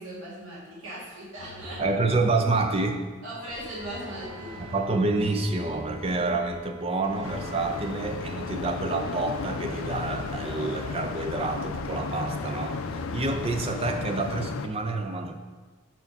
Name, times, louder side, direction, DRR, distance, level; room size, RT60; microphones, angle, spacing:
voice 1, 0.0-1.8 3.2-4.6, right 1 dB, 85° right, -7 dB, 2.0 m, -38 dB
sound 1, 1.4-13.8, equal, 70° right, 1.1 m, -43 dB
voice 2, 1.8-3.1 4.7-15.4, right 3 dB, 30° right, 5 dB, 0.4 m, -28 dB
Wind instrument woodwind instrument, 3.3-7.9, right 1 dB, 55° left, 0.8 m, -50 dB
sound 2, 7.2-14.7, left 4 dB, 90° left, 0.4 m, -34 dB
5.7 x 4.9 x 5.2 m, 1.4 s
head